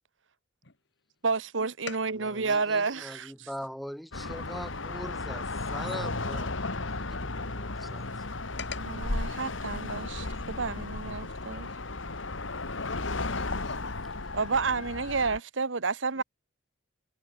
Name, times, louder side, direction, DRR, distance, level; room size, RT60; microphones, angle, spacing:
voice 1, 1.2-3.5 8.9-11.7 14.3-16.2, right 4 dB, 70° right, 1.3 m, -30 dB
voice 2, 2.2-8.1, equal, ahead, 1.7 m, -42 dB
sound 1, 4.1-15.4, left 2 dB, 80° left, 2.3 m, -34 dB
voice 3, 12.7-13.9 16.2-16.3, left 5 dB, 65° left, 2.7 m, -40 dB
head